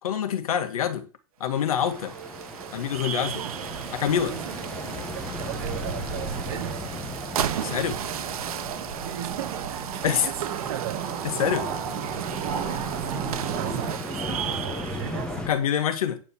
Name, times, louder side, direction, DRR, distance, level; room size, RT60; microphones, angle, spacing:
voice 1, 0.0-1.1 1.4-2.1 2.7-3.4 3.9-4.3 7.6-8.0 10.0-10.3 11.2-11.7 15.5-16.2, left 9 dB, 75° left, 2.0 m, -25 dB
sound 1, 1.5-15.6, right 10 dB, 85° right, 1.1 m, -35 dB
sound 2, 1.7-15.5, left 2 dB, 5° left, 1.1 m, -38 dB
voice 2, 3.1-3.6 4.3-4.6 5.1-6.9 9.0-11.3 12.6-15.4, right 12 dB, 45° right, 1.0 m, -37 dB
sound 3, 3.7-13.9, right 6 dB, 30° right, 2.2 m, -35 dB
9.2 x 5.5 x 7.1 m
supercardioid pair, 165°, 18 cm